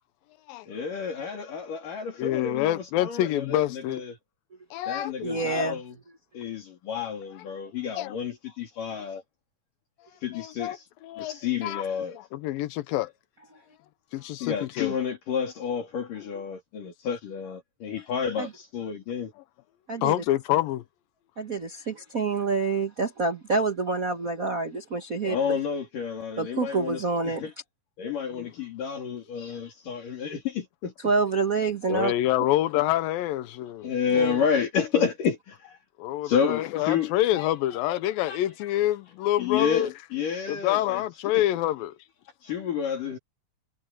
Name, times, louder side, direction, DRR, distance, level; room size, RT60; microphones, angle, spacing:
voice 1, 0.7-4.2 4.9-5.9 6.3-9.2 10.2-10.9 11.2-12.2 14.4-19.3 25.2-27.5 28.0-30.9 33.8-35.8 36.2-37.5 37.7-38.0 38.3-38.4 39.4-41.0 41.3-41.4 42.4-43.2, left 7 dB, 65° left, 4.6 m, -30 dB
voice 2, 2.2-4.0 4.7-5.8 8.0-8.1 10.3-10.8 11.0-11.4 11.6-11.8 12.2-13.1 14.1-14.9 20.0-20.8 31.9-33.9 36.0-39.9 40.5-41.9, left 14 dB, 90° left, 2.6 m, -27 dB
voice 3, 5.2-5.8 18.4-18.5 19.9-20.2 21.4-25.4 26.4-27.4 31.0-32.1 34.1-34.4 34.9-35.1, right 4 dB, 75° right, 0.7 m, -27 dB
omnidirectional pair, 4.1 m